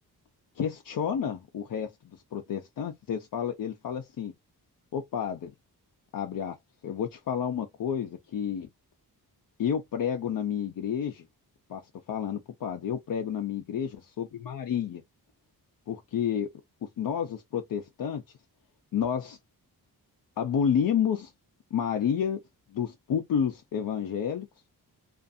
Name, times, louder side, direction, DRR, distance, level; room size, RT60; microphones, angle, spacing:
voice 1, 0.6-4.3 4.9-5.5 6.1-6.6 6.8-8.7 9.6-11.3 11.7-11.8 12.1-15.0 15.9-16.5 16.8-18.2 18.9-19.4 20.4-21.3 21.7-22.4 22.7-24.5, left 8 dB, 60° left, 0.6 m, -30 dB
2.5 x 2.5 x 2.5 m
wide cardioid pair, 135°, 38 cm